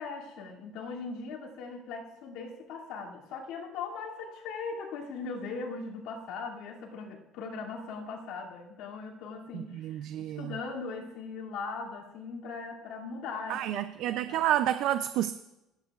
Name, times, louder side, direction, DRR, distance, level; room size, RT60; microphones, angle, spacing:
voice 1, 0.0-14.5, left 4 dB, 80° left, 2.6 m, -39 dB
voice 2, 9.5-10.6 13.5-15.3, right 12 dB, 65° right, 0.4 m, -30 dB
26.5 x 9.6 x 2.4 m
cardioid pair, 130°, 0 cm